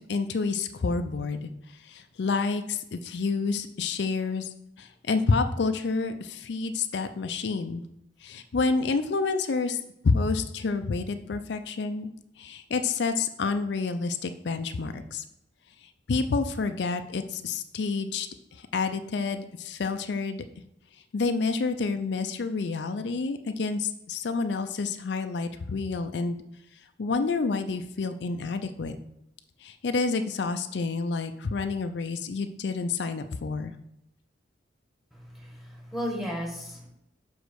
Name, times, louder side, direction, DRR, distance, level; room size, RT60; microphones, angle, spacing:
voice 1, 0.0-4.5 4.8-7.8 8.2-12.1 12.4-15.2 15.8-20.4 21.1-26.4 27.0-29.0 29.6-33.7, left 4 dB, 65° left, 8 dB, 0.4 m, -29 dB
voice 2, 35.1-36.9, equal, ahead, 0 dB, 1.5 m, -35 dB
5.4 x 5.1 x 6.3 m, 0.81 s
head